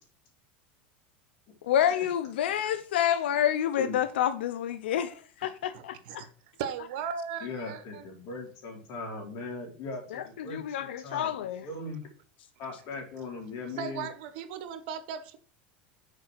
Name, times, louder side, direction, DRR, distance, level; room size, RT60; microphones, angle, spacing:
voice 1, 1.6-5.1 5.4-6.3 10.1-11.6, left 10 dB, 85° left, 0.6 m, -28 dB
voice 2, 5.7-6.3 6.6-8.0 13.8-15.4, right 7 dB, 70° right, 1.2 m, -37 dB
voice 3, 7.4-12.1 12.6-14.1, left 3 dB, 55° left, 4.2 m, -39 dB
6.6 x 4.9 x 6.5 m
supercardioid pair, 110°, 6 cm